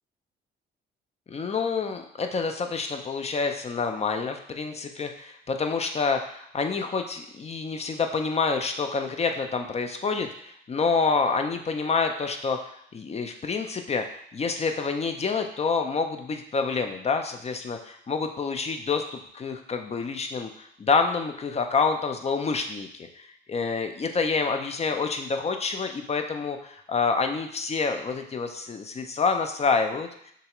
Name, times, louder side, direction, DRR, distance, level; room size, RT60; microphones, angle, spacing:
voice 1, 1.3-14.1 14.3-30.1, left 4 dB, 30° left, 5 dB, 0.5 m, -27 dB
6.6 x 2.4 x 3.0 m, 0.69 s
cardioid pair, 90°, 20 cm